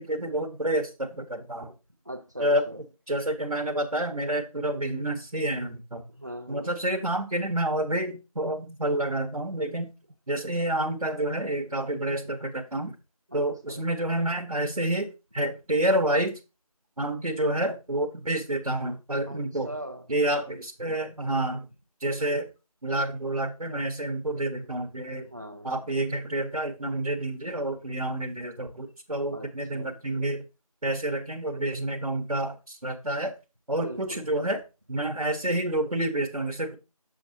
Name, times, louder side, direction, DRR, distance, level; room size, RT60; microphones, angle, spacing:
voice 1, 0.0-1.7 2.4-6.0 6.5-9.9 10.3-12.9 13.3-16.3 17.0-19.7 20.1-21.7 22.0-22.5 22.8-25.3 25.6-30.5 30.8-33.3 33.7-34.6 34.9-36.7, right 1 dB, 85° right, 1.2 m, -29 dB
voice 2, 2.0-2.8 6.1-6.7 13.3-13.4 13.7-13.8 19.3-20.1 25.3-25.9 29.3-30.3 33.8-34.3, equal, 30° right, 0.8 m, -41 dB
7.0 x 6.6 x 2.7 m
figure-of-eight pair, 175°, 19 cm